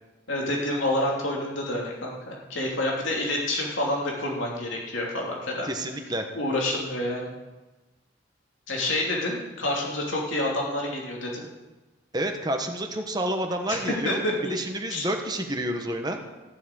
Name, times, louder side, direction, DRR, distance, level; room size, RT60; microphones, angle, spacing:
voice 1, 0.3-5.7 6.3-7.3 8.7-11.4 13.7-13.8 14.0-14.6 14.9-15.1, left 1 dB, 85° left, -2 dB, 2.9 m, -28 dB
voice 2, 5.6-6.3 12.1-14.2 14.5-16.2, right 1 dB, 20° right, 4 dB, 1.1 m, -29 dB
15.0 x 7.1 x 8.8 m, 1.2 s
head